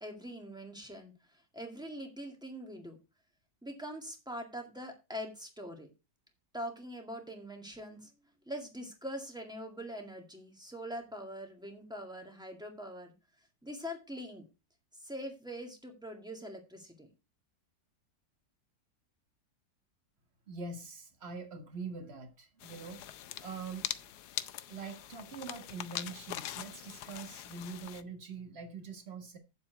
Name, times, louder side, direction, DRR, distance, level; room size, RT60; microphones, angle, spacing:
voice 1, 0.0-3.0 3.6-5.9 6.5-8.1 8.5-13.1 13.6-14.4 14.9-17.1, equal, ahead, 1.8 m, -43 dB
voice 2, 20.5-23.0 23.4-24.1 24.7-29.4, right 4 dB, 35° right, 1.7 m, -44 dB
sound 1, 22.6-28.0, left 12 dB, 70° left, 1.1 m, -42 dB
8.7 x 7.4 x 4.5 m
omnidirectional pair, 2.0 m